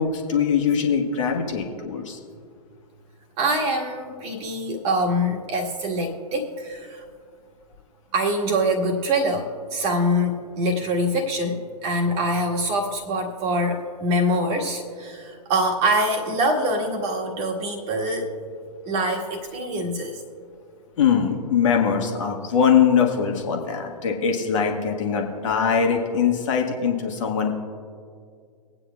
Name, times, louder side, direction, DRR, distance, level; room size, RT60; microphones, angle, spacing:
voice 1, 0.0-2.2 21.0-27.5, left 7 dB, 50° left, 2 dB, 1.5 m, -22 dB
voice 2, 3.4-7.0 8.1-18.3 18.9-20.2, equal, 30° right, 1 dB, 1.5 m, -24 dB
22.0 x 8.9 x 2.3 m, 2.2 s
figure-of-eight pair, 110°, 20 cm